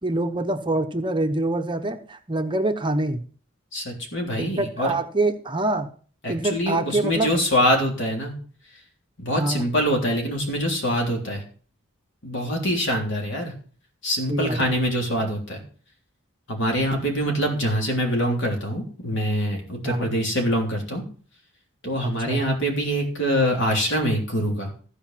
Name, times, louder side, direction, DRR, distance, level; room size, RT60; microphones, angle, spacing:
voice 1, 0.0-3.2 4.4-5.9 6.3-7.3 9.3-9.6 14.3-14.7 19.8-20.1 22.0-22.4, right 2 dB, 20° right, 6 dB, 0.9 m, -25 dB
voice 2, 3.7-4.9 6.2-8.3 9.2-11.4 12.2-13.5 14.0-15.6 16.5-21.0 21.8-24.7, equal, 55° left, 1 dB, 3.4 m, -24 dB
14.5 x 5.0 x 7.5 m, 0.43 s
head